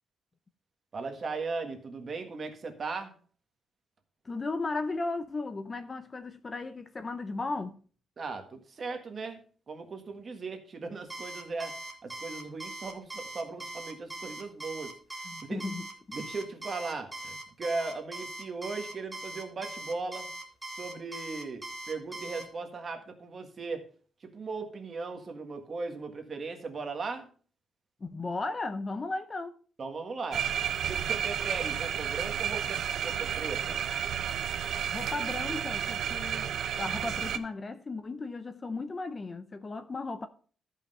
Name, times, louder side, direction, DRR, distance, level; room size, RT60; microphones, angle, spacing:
voice 1, 0.9-3.2 8.2-9.4 9.7-11.8 12.0-15.0 15.5-15.6 16.1-20.3 20.7-23.9 24.2-27.3 29.8-30.4 30.9-33.8, right 4 dB, 35° right, 1.7 m, -38 dB
voice 2, 4.2-7.8 15.3-16.2 28.0-29.6 34.9-36.5 36.8-40.3, left 3 dB, 25° left, 0.6 m, -35 dB
Alarm, 11.1-22.4, right 2 dB, 10° right, 1.5 m, -41 dB
sound 1, 30.3-37.4, right 9 dB, 65° right, 0.7 m, -32 dB
13.0 x 5.7 x 5.4 m
cardioid pair, 160°, 0 cm